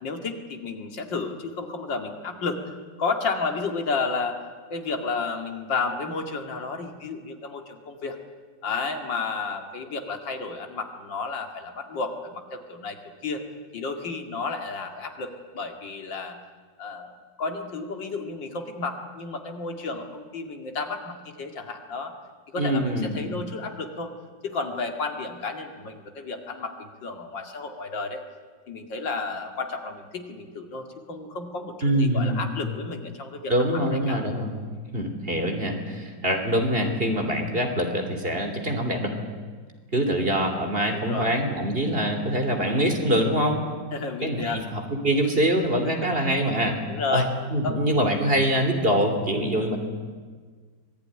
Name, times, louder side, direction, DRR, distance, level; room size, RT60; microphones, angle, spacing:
voice 1, 0.0-2.6 3.0-4.4 4.7-8.2 8.6-13.0 13.2-13.4 13.7-16.4 16.8-22.1 22.5-24.1 24.4-28.2 28.7-34.2 40.9-41.3 43.9-44.6 45.8-45.9 46.9-47.3 47.6-47.8, left 4 dB, 75° left, 5 dB, 2.8 m, -32 dB
voice 2, 22.6-23.2 31.8-32.4 33.5-34.5 34.9-39.1 39.9-43.6 44.2-46.8 47.1-47.2 47.5-49.8, equal, 30° right, 4 dB, 3.2 m, -24 dB
25.5 x 19.0 x 10.0 m, 1.5 s
omnidirectional pair, 2.0 m